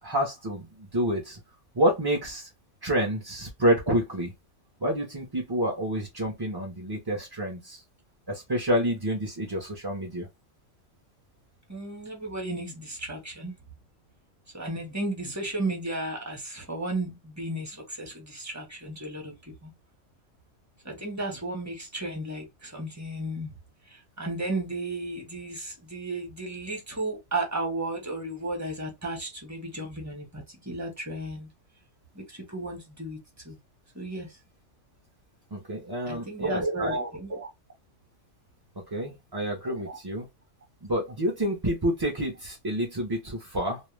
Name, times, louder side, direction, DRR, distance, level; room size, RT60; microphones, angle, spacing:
voice 1, 0.0-1.4 1.7-2.5 2.8-4.3 4.8-7.8 8.3-10.3 35.5-37.0 38.8-40.3 40.8-43.8, equal, 35° right, 0.3 m, -28 dB
voice 2, 11.7-13.5 14.5-19.7 20.8-23.6 23.9-31.5 32.1-33.2 33.4-33.6 33.9-34.4 36.1-37.5 39.6-40.0, right 2 dB, 15° right, 0.8 m, -34 dB
2.3 x 2.0 x 3.1 m
omnidirectional pair, 1.3 m